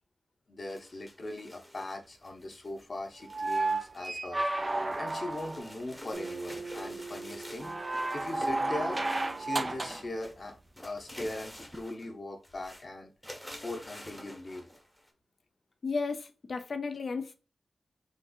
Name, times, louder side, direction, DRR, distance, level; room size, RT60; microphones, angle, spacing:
voice 1, 0.5-9.0 9.4-10.5 10.8-13.1 13.6-14.7, left 2 dB, 40° left, 0.9 m, -40 dB
sound 1, 0.7-4.1 4.4-9.9 10.1-12.1 12.4-12.9 13.2-15.1, equal, 5° left, 0.8 m, -49 dB
sound 2, 3.3-5.8 7.6-10.1 11.7-11.8, right 2 dB, 25° right, 0.3 m, -32 dB
Acoustic guitar, 6.1-9.6, right 4 dB, 80° right, 0.6 m, -44 dB
voice 2, 15.8-17.4, left 4 dB, 60° left, 0.5 m, -34 dB
3.9 x 2.7 x 2.3 m
wide cardioid pair, 120°, 0 cm